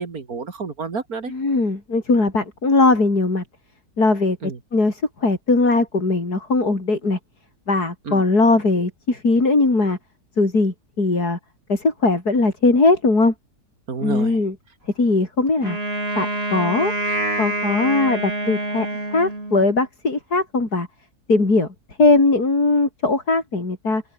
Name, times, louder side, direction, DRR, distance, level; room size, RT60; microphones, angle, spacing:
voice 1, 0.0-1.3 4.4-4.6 8.1-8.2 13.9-14.4, right 5 dB, 65° right, 2.7 m, -29 dB
voice 2, 1.3-3.4 4.0-7.2 7.7-10.0 10.4-11.4 11.7-13.3 14.0-14.6 15.0-15.8 16.2-16.9 17.4-20.9 21.3-21.7 22.0-24.0, left 3 dB, 75° left, 5.3 m, -19 dB
Wind instrument woodwind instrument, 15.6-19.8, right 2 dB, 40° right, 5.6 m, -26 dB
open air
omnidirectional pair, 1.7 m